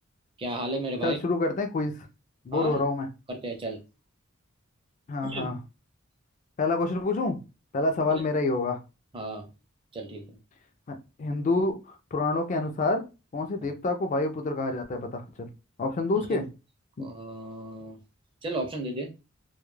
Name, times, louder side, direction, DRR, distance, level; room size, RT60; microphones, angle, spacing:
voice 1, 0.4-1.2 2.5-2.8 3.3-3.8 5.2-5.5 8.1-8.2 9.1-9.4 9.9-10.4 16.3-16.4 17.0-18.0 18.4-19.1, right 2 dB, 25° right, 0.5 m, -34 dB
voice 2, 1.0-2.1 2.5-3.1 5.1-5.6 6.6-7.4 7.7-8.8 10.9-13.0 13.3-15.5 15.8-16.5 17.0-17.1, left 3 dB, 35° left, 0.3 m, -27 dB
2.2 x 2.0 x 3.1 m
head